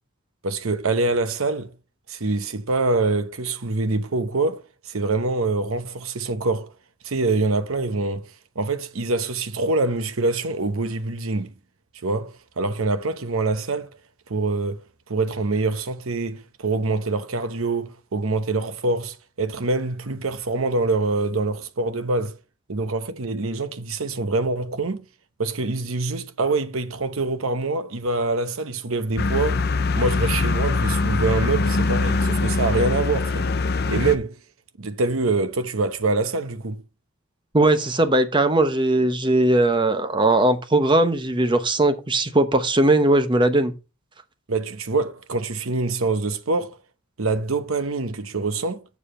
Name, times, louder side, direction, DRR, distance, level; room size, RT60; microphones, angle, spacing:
voice 1, 0.4-1.7 2.1-6.7 7.0-11.5 12.0-13.9 14.3-22.4 22.7-25.0 25.4-29.6 30.0-33.5 33.9-34.4 34.8-36.8 44.5-46.8 47.2-48.8, right 3 dB, 80° right, 0.9 m, -25 dB
sound 1, 29.2-34.2, left 3 dB, 50° left, 0.7 m, -22 dB
voice 2, 37.5-43.7, right 2 dB, 25° right, 0.8 m, -19 dB
7.2 x 6.9 x 4.3 m
head